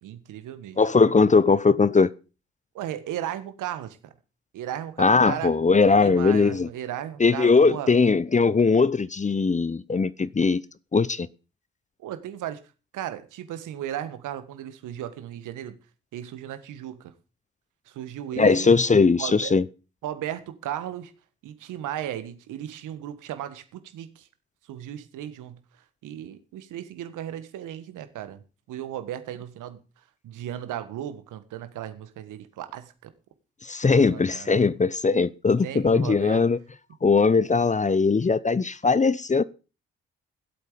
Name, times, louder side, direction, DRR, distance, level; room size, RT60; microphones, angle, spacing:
voice 1, 0.0-0.8 2.8-4.1 4.5-5.5 6.0-7.9 12.0-12.6 12.9-15.8 16.1-17.1 17.9-18.7 19.2-19.5 20.0-21.1 21.4-24.3 24.7-25.6 26.0-28.4 28.7-29.8 30.2-33.1 33.8-34.5 35.6-36.4, right 11 dB, 70° right, 1.6 m, -35 dB
voice 2, 0.8-2.1 5.0-6.7 7.2-10.6 10.9-11.3 18.4-19.6 33.6-36.6 37.0-39.4, left 4 dB, 25° left, 0.8 m, -20 dB
16.0 x 8.3 x 5.1 m
hypercardioid pair, 50°, 32 cm